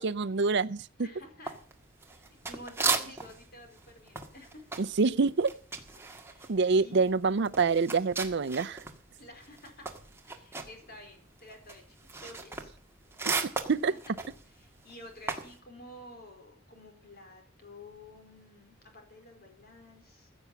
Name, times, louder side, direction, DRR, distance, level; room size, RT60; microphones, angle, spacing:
voice 1, 0.0-0.9 4.8-5.5 6.5-8.8 13.2-13.4 13.7-13.9, right 4 dB, 55° right, 0.5 m, -26 dB
voice 2, 1.0-1.6 2.1-4.8 6.3-7.3 9.2-9.9 10.2-12.7 13.9-14.1 14.4-20.3, left 1 dB, 50° left, 4.5 m, -51 dB
sound 1, 1.5-3.5 3.7-9.0 9.3-15.6, right 4 dB, 10° right, 1.8 m, -36 dB
15.5 x 7.0 x 8.5 m
head